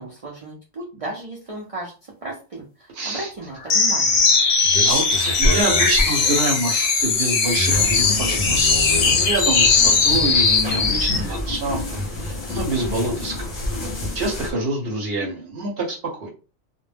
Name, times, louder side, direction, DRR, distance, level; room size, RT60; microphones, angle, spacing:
voice 1, 0.0-4.3, right 2 dB, 45° right, -2 dB, 0.4 m, -35 dB
voice 2, 2.9-3.3 4.8-8.8 9.1-13.5 14.1-16.3, right 2 dB, 60° right, 1 dB, 0.9 m, -26 dB
sound 1, 3.7-11.3, left 4 dB, 75° left, 0.3 m, -18 dB
sound 2, 7.7-14.5, left 1 dB, 40° left, 0.7 m, -29 dB
2.2 x 2.1 x 3.2 m, 0.34 s
omnidirectional pair, 1.2 m